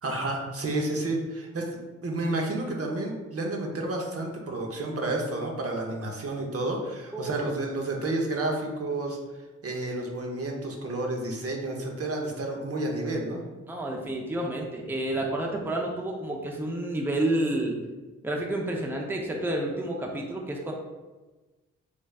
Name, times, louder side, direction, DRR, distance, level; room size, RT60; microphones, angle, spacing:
voice 1, 0.0-1.7 2.0-9.2 9.6-13.4, right 2 dB, 50° right, 0 dB, 0.8 m, -30 dB
voice 2, 7.1-7.5 13.7-17.8 18.2-20.7, right 1 dB, 5° right, 0 dB, 0.6 m, -30 dB
3.5 x 3.0 x 2.3 m, 1.2 s
supercardioid pair, 45°, 31 cm